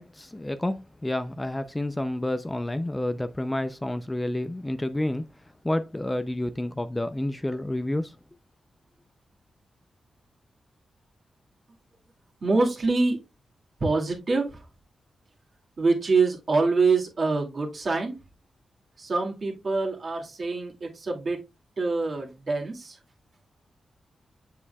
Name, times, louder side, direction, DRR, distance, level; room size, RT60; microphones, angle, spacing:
voice 1, 0.0-5.2 5.6-8.1, left 1 dB, 15° left, 0.4 m, -29 dB
voice 2, 12.4-13.2 13.8-14.6 15.8-18.1 19.0-21.4 21.8-23.0, right 3 dB, 45° right, 2.2 m, -25 dB
7.3 x 6.5 x 2.3 m
cardioid pair, 90°, 0 cm